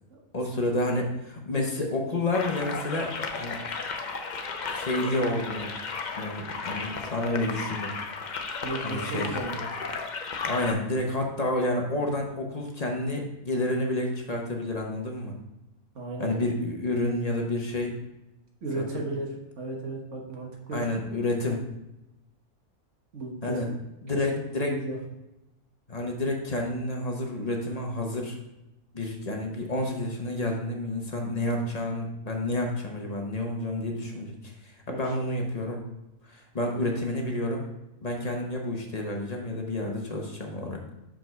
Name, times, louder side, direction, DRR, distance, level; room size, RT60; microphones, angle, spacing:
voice 1, 0.3-3.6 4.7-5.7 6.1-7.9 8.8-9.3 10.5-15.3 16.2-17.9 20.7-21.6 23.4-23.7 24.0-24.7 25.9-28.4 28.9-35.8 36.3-37.6 38.0-40.8, left 1 dB, 30° left, 1 dB, 0.8 m, -29 dB
sound 1, 2.3-10.7, left 4 dB, 55° left, 0.5 m, -34 dB
voice 2, 8.6-9.7 15.9-16.3 18.6-20.9 23.1-23.6 24.1-25.0 34.9-35.0, right 2 dB, 50° right, -1 dB, 1.6 m, -34 dB
6.0 x 5.1 x 4.5 m, 0.93 s
omnidirectional pair, 1.6 m